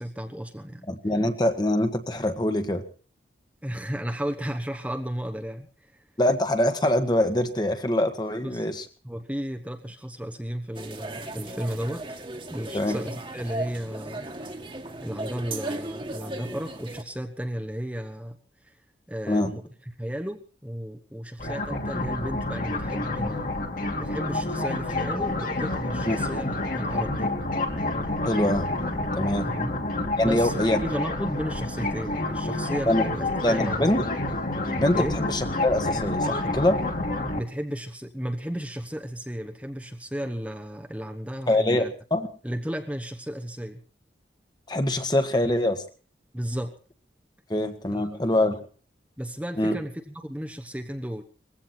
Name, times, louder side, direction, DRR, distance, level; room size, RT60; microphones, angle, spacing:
voice 1, 0.0-0.9 3.6-6.0 8.4-8.7 9.0-12.0 12.5-14.3 15.0-18.4 18.6-18.7 19.1-19.6 20.0-23.5 24.0-27.3 29.4-29.7 30.2-33.9 34.9-35.2 37.4-41.9 42.4-43.8 46.3-46.7 47.9-48.5 49.2-51.2, equal, 5° right, 4 dB, 1.1 m, -34 dB
voice 2, 0.9-2.8 6.2-8.8 12.7-13.0 19.3-19.5 26.1-26.2 28.2-28.7 29.2-29.5 30.2-30.8 32.9-33.0 33.4-34.0 34.7-36.8 41.5-41.8 42.1-42.3 44.7-45.8 47.5-48.6 49.6-49.8, left 1 dB, 25° left, 7 dB, 1.6 m, -24 dB
sound 1, 10.7-17.0, right 2 dB, 30° right, 1.9 m, -36 dB
sound 2, 21.4-37.4, left 2 dB, 50° left, 2.8 m, -29 dB
20.5 x 16.0 x 4.4 m, 0.39 s
head